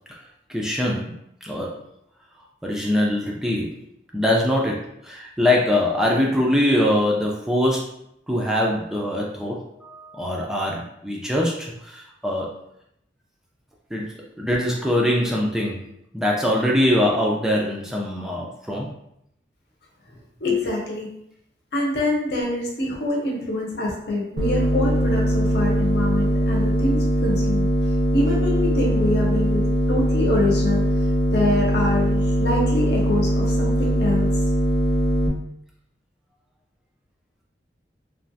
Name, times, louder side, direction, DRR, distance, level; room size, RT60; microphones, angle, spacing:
voice 1, 0.5-1.1 1.4-1.8 2.6-3.7 4.1-7.8 8.3-12.5 13.9-15.9 16.1-18.9, left 1 dB, 5° right, -3 dB, 0.3 m, -23 dB
voice 2, 20.4-21.1 21.7-27.7 28.1-30.8 31.3-34.3, left 2 dB, 70° left, -3 dB, 0.8 m, -25 dB
sound 1, 24.4-35.3, equal, 70° right, 0.5 m, -21 dB
3.2 x 2.3 x 2.6 m, 0.77 s
head